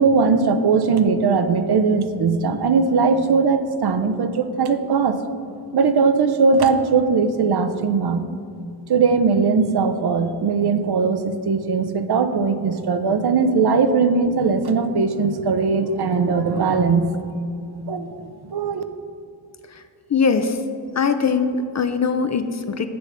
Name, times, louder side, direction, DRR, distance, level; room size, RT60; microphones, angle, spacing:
voice 1, 0.0-5.2 5.7-8.2 8.9-17.2 17.9-18.8, right 4 dB, 60° right, 9 dB, 0.5 m, -19 dB
voice 2, 20.1-20.6 21.0-22.9, left 5 dB, 40° left, 9 dB, 0.4 m, -21 dB
7.8 x 3.4 x 5.6 m, 2.4 s
cardioid pair, 50°, 45 cm